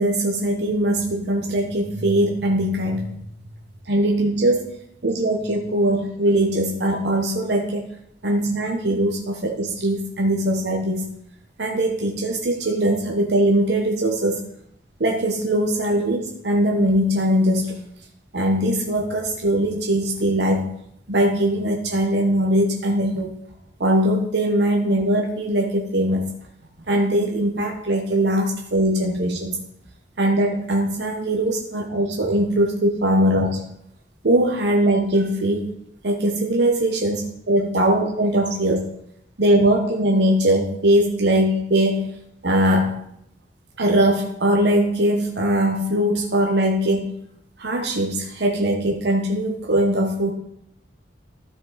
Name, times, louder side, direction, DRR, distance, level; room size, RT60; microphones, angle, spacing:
voice 1, 0.0-3.1 3.9-4.7 5.0-7.8 8.2-11.1 11.6-14.4 15.0-17.8 18.3-20.7 21.1-23.4 23.8-26.3 26.9-29.6 30.2-33.6 34.2-35.7 36.0-38.9 39.4-42.1 42.4-43.0 43.8-47.2 47.6-50.3, right 1 dB, 65° right, 1 dB, 1.0 m, -21 dB
12.5 x 5.5 x 4.0 m, 0.75 s
head